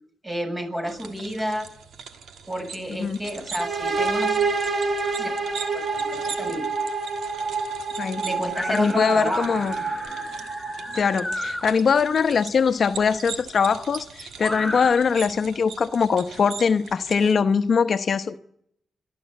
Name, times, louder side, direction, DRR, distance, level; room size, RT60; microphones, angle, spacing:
voice 1, 0.2-1.7 2.5-4.4 5.2-6.7 8.2-9.5, equal, 25° right, 8.0 m, -30 dB
sound 1, 0.9-17.3, right 6 dB, 80° right, 1.6 m, -41 dB
sound 2, 3.6-11.3, right 4 dB, 55° right, 2.5 m, -28 dB
sound 3, 8.6-11.7 13.0-13.1 14.4-14.9, left 1 dB, 5° left, 6.5 m, -33 dB
voice 2, 8.7-9.7 10.9-18.4, left 6 dB, 60° left, 0.9 m, -22 dB
29.0 x 12.5 x 8.3 m
cardioid pair, 60°, 0 cm